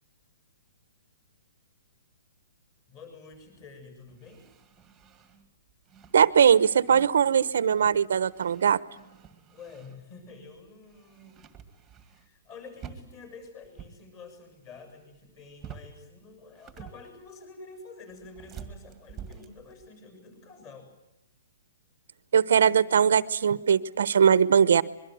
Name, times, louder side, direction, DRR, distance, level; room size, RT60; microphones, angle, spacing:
voice 1, 2.9-4.5 9.5-11.5 12.0-20.9, left 4 dB, 25° left, 7 dB, 7.5 m, -48 dB
sound 1, 3.3-10.3 10.6-12.5 12.7-14.0 14.3-14.9 15.1-16.0 16.4-17.3 18.1-19.9, right 8 dB, 10° right, 2.0 m, -49 dB
voice 2, 6.1-8.8 22.3-24.8, right 7 dB, 65° right, 16 dB, 1.0 m, -20 dB
24.5 x 22.5 x 9.4 m, 0.91 s
hypercardioid pair, 175°, 0 cm